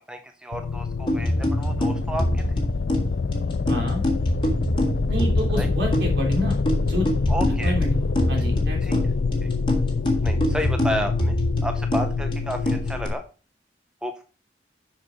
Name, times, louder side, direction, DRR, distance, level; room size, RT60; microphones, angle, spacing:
voice 1, 0.1-2.4 5.6-5.7 7.3-7.7 8.9-9.0 10.2-11.3 11.6-13.2 14.0-14.2, equal, 5° right, 5 dB, 0.6 m, -31 dB
sound 1, 0.5-13.1, left 4 dB, 60° left, 0.4 m, -26 dB
sound 2, 1.1-13.1, equal, 25° left, 1.6 m, -26 dB
voice 2, 3.7-4.0 5.1-9.2, equal, 70° right, -1 dB, 3.6 m, -29 dB
6.9 x 5.9 x 5.0 m, 0.35 s
head